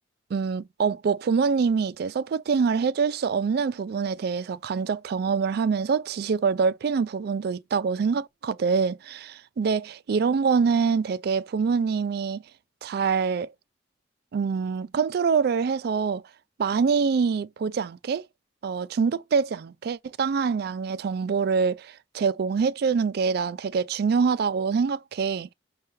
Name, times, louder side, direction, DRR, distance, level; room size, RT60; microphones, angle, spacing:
voice 1, 0.3-12.4 12.8-13.5 14.3-16.2 16.6-18.2 18.6-25.5, right 5 dB, 60° right, 0.3 m, -25 dB
5.6 x 2.3 x 3.1 m
head